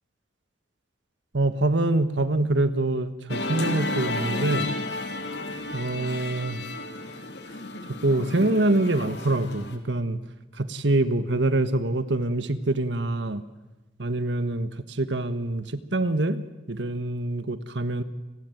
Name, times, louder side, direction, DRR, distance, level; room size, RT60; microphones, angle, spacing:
voice 1, 1.3-4.7 5.7-6.6 8.0-10.2 10.6-13.4 14.0-18.0, right 2 dB, 70° right, 11 dB, 1.4 m, -25 dB
Musical instrument, 3.3-9.8, left 2 dB, 65° left, 2.8 m, -32 dB
29.5 x 20.5 x 9.2 m, 1.1 s
head